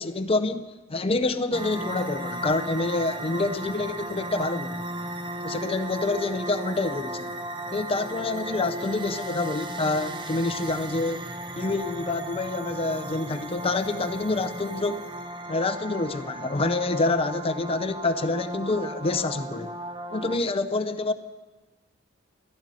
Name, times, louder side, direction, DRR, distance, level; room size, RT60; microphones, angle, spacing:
voice 1, 0.0-4.8 5.4-7.3 7.7-11.2 11.6-15.1 15.5-19.7 20.1-21.1, left 3 dB, 30° left, 0.6 m, -27 dB
sound 1, 1.5-20.4, right 1 dB, 25° right, 0.7 m, -36 dB
13.0 x 7.8 x 9.6 m
head